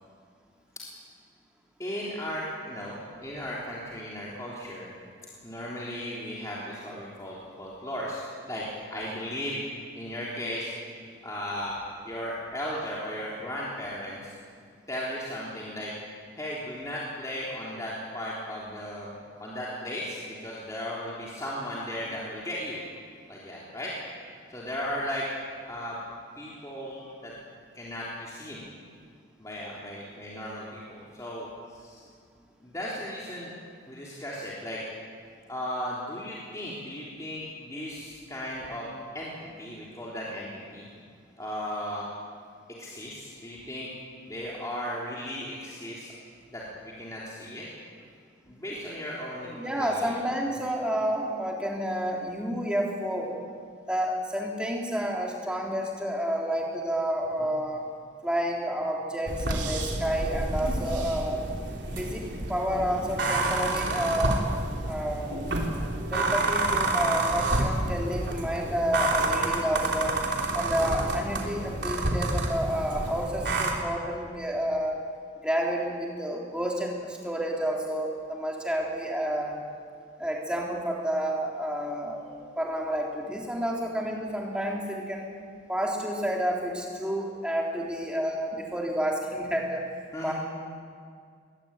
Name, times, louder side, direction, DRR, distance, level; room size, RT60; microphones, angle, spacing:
voice 1, 1.8-3.0 3.2-4.9 5.4-8.6 8.9-9.6 10.0-10.7 11.2-11.8 12.0-14.3 14.9-15.9 16.4-19.1 19.4-22.8 23.3-23.9 24.5-25.3 25.7-26.0 26.4-27.3 27.7-28.6 29.4-32.0 32.6-33.5 33.9-34.8 35.5-38.9 39.1-39.3 39.6-40.8 41.4-42.1 42.8-43.9 44.3-46.1 46.5-47.7 48.4-50.2 57.4-57.5 61.9-62.0 63.9-64.1 90.1-90.3, equal, 15° left, -6 dB, 3.4 m, -36 dB
voice 2, 49.5-53.4 53.9-57.8 58.2-61.5 62.0-64.4 64.9-65.4 66.1-70.2 70.5-75.0 75.4-79.5 80.2-85.3 85.7-89.8 90.2-90.3, equal, 5° right, -1 dB, 3.4 m, -30 dB
sound 1, 59.3-73.7, right 2 dB, 65° right, 3.4 m, -29 dB
22.0 x 20.5 x 9.0 m, 2.1 s
head